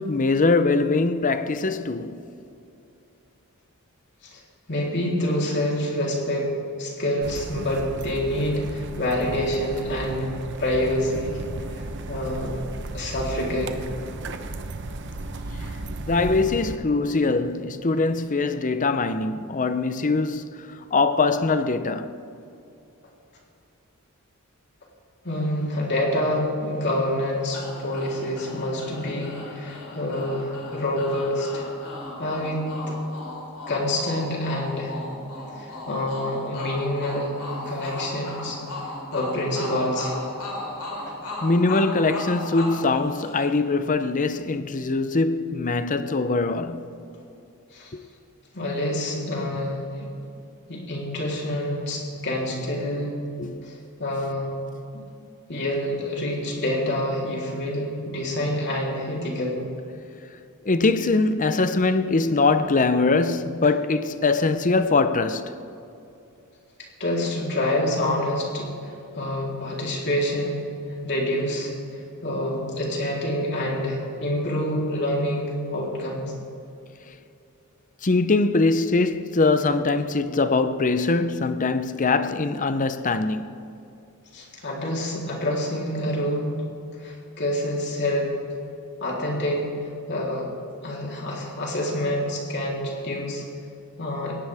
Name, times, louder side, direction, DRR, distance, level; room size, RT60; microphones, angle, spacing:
voice 1, 0.0-2.2 16.1-20.6 20.9-22.2 41.4-46.9 47.9-48.0 53.4-53.7 60.6-65.6 78.0-83.5, left 3 dB, 35° left, 0.7 m, -22 dB
voice 2, 4.7-6.5 6.8-10.3 10.6-11.4 11.7-12.6 12.9-13.8 25.2-31.7 32.2-33.0 33.7-35.0 35.5-37.4 37.7-38.6 39.1-40.1 47.7-47.9 48.5-50.1 50.7-53.2 53.6-54.5 54.9-55.0 55.5-59.6 67.0-70.7 71.0-76.3 84.3-86.5 87.0-88.3 89.0-89.7 90.1-90.5 90.8-93.4 94.0-94.4, left 1 dB, 50° left, 3.6 m, -27 dB
sound 1, 7.2-16.8, right 2 dB, 55° right, 0.9 m, -35 dB
sound 2, 27.5-43.7, left 2 dB, 90° left, 4.4 m, -36 dB
20.5 x 17.5 x 3.5 m
head